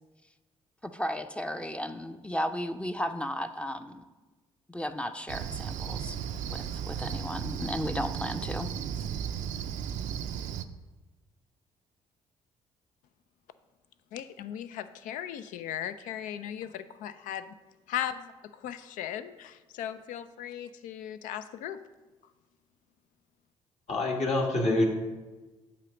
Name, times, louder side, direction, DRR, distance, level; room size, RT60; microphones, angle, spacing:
voice 1, 0.8-4.0 4.7-6.2 6.5-8.7, equal, 10° left, 8 dB, 0.5 m, -34 dB
Cricket, 5.3-10.7, right 8 dB, 70° right, 0.4 m, -35 dB
voice 2, 14.1-17.5 17.9-21.8, left 10 dB, 80° left, 12 dB, 0.4 m, -37 dB
voice 3, 23.9-24.9, left 2 dB, 55° left, 0 dB, 1.6 m, -26 dB
8.2 x 2.9 x 6.2 m, 1.2 s
supercardioid pair, 55°, 13 cm